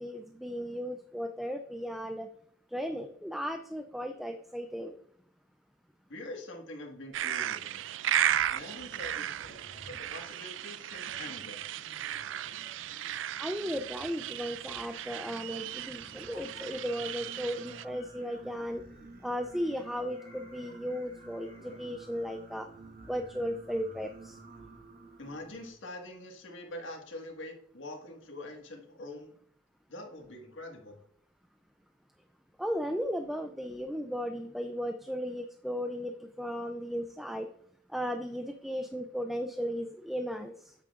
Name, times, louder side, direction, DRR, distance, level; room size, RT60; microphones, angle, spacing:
voice 1, 0.0-2.3 2.7-5.0 13.4-18.8 19.2-22.7 23.1-24.4 32.6-37.5 37.9-40.7, equal, ahead, 6 dB, 0.4 m, -36 dB
voice 2, 6.1-7.8 8.5-11.8 25.2-29.3 29.9-31.0, left 1 dB, 85° left, 2 dB, 1.7 m, -44 dB
sound 1, 7.1-17.8, right 11 dB, 80° right, 0.3 m, -35 dB
sound 2, 8.2-24.8 25.5-25.6, left 1 dB, 55° left, 1.8 m, -57 dB
Singing, 15.0-25.7, right 3 dB, 50° right, 1.2 m, -52 dB
8.8 x 8.5 x 2.4 m, 0.66 s
head